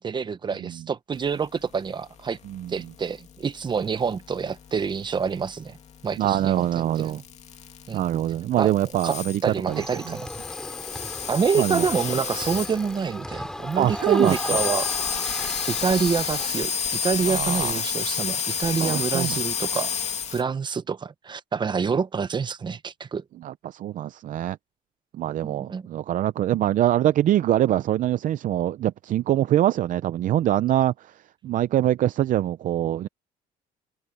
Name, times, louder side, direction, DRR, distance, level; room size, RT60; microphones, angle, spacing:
voice 1, 0.0-2.4 2.7-5.8 6.0-6.7 7.0-7.1 7.9-8.0 8.6-8.7 9.0-9.2 9.4-10.3 11.3-14.9 15.7-19.9 20.3-23.2 25.4-25.9, right 5 dB, 30° right, 1.1 m, -27 dB
sound 1, 2.8-13.1 13.4-13.5 13.7-20.4, left 6 dB, 45° left, 2.5 m, -30 dB
voice 2, 6.2-7.2 7.9-10.2 11.6-11.9 13.8-14.6 17.3-17.8 18.8-19.4 23.4-24.6 25.1-31.1 31.4-33.1, right 12 dB, 55° right, 0.6 m, -24 dB
sound 2, 9.7-16.5, left 1 dB, 5° left, 4.1 m, -36 dB
cardioid pair, 115°, 16 cm